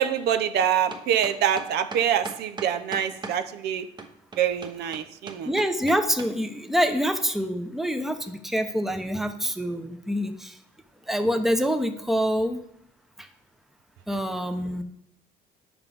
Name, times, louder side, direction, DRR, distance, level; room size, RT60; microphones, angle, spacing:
voice 1, 0.0-3.9 4.4-5.5, right 9 dB, 75° right, 10 dB, 0.7 m, -25 dB
sound 1, 0.6-3.4 4.0-6.3, right 3 dB, 25° right, 1.0 m, -38 dB
voice 2, 5.4-10.6 11.1-12.6 13.2-13.3 14.1-14.8, equal, ahead, 7 dB, 0.7 m, -26 dB
8.9 x 5.9 x 5.3 m, 0.76 s
cardioid pair, 110°, 17 cm